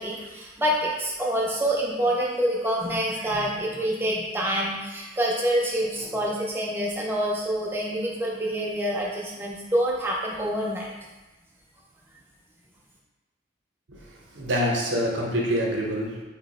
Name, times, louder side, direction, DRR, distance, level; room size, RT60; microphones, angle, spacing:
voice 1, 0.0-10.9, equal, 10° right, -3 dB, 0.4 m, -26 dB
voice 2, 14.3-16.2, equal, 70° right, -2 dB, 0.6 m, -26 dB
2.7 x 2.0 x 4.0 m, 1.1 s
head